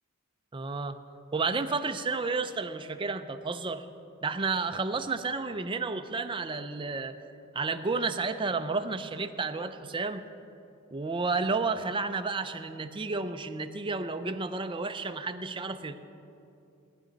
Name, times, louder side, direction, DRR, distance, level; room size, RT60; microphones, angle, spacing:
voice 1, 0.5-1.0 1.3-3.9 4.2-7.2 7.5-10.2 10.9-16.0, right 4 dB, 25° right, 8 dB, 0.5 m, -31 dB
18.0 x 10.0 x 4.0 m, 2.7 s
head